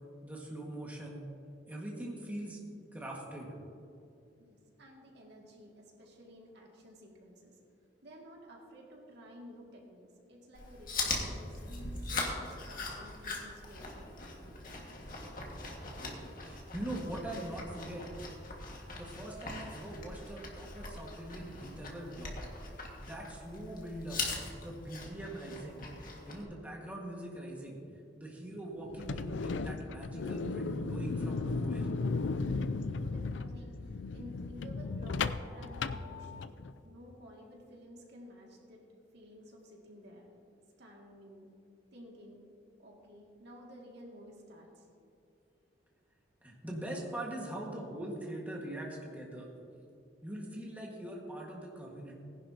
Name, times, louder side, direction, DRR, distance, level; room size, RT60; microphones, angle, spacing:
voice 1, 0.2-1.2 1.7-2.6 2.9-3.5 16.4-18.1 19.0-22.3 23.0-24.2 24.5-25.8 26.2-27.8 28.2-31.8 46.4-49.5 50.2-52.2, right 1 dB, 10° right, -3 dB, 1.7 m, -42 dB
voice 2, 4.4-7.6 8.0-14.3 32.9-36.5 36.8-38.8 39.1-40.3 40.8-41.5 41.9-42.4 42.8-44.9, equal, 65° right, -1 dB, 2.3 m, -53 dB
Chewing mastication, 10.5-26.4, left 3 dB, 50° left, 1.9 m, -41 dB
sound 1, 28.9-36.7, left 4 dB, 70° left, 0.4 m, -35 dB
19.0 x 11.0 x 2.9 m, 2.6 s
head